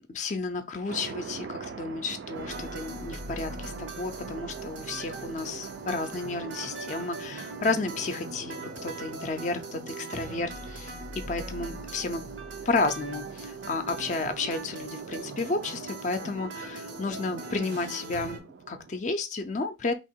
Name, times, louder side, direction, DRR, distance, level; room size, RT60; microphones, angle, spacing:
voice 1, 0.1-8.6 8.8-10.9 11.3-12.3 12.7-19.9, left 3 dB, 40° left, 0.4 m, -32 dB
sound 1, 0.9-19.0, right 5 dB, 70° right, 0.4 m, -44 dB
sound 2, 2.3-18.4, right 2 dB, 90° right, 0.9 m, -41 dB
2.9 x 2.8 x 4.3 m
head